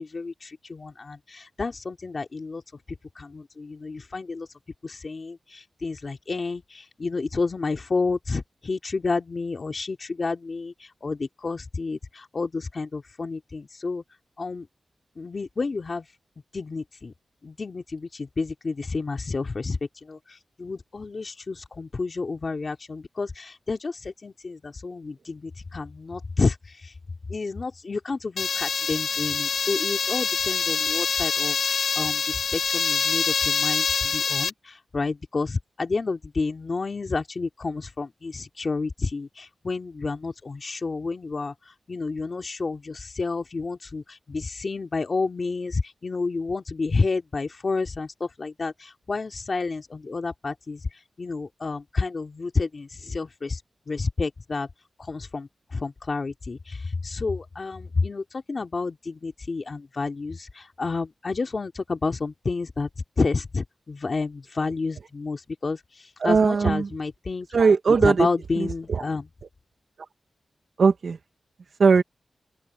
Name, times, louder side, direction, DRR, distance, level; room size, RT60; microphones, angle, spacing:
voice 1, 0.0-2.6 3.2-4.5 4.8-14.0 14.4-14.7 15.2-16.1 16.5-17.1 17.4-20.2 20.6-26.9 27.3-41.5 41.9-50.8 51.2-53.6 53.9-54.7 55.0-62.9 63.2-65.8 66.2-67.5 68.0-69.3, left 4 dB, 45° left, 2.4 m, -30 dB
sound 1, 28.4-34.5, left 6 dB, 80° left, 0.9 m, -25 dB
voice 2, 66.2-66.9 67.5-68.3 68.6-69.0 70.8-71.2 71.8-72.0, right 5 dB, 70° right, 1.2 m, -19 dB
open air
wide cardioid pair, 95°, 0 cm